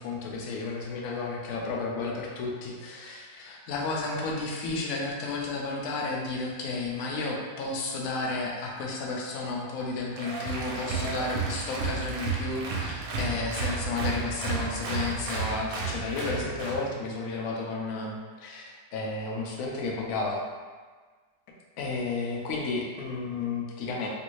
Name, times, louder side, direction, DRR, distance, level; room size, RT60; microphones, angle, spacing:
voice 1, 0.0-18.6 18.9-20.4 21.8-24.1, left 3 dB, 70° left, -1 dB, 0.9 m, -32 dB
Applause, 10.2-16.8, right 4 dB, 80° right, 1.3 m, -32 dB
3.2 x 3.0 x 2.6 m, 1.5 s
omnidirectional pair, 1.9 m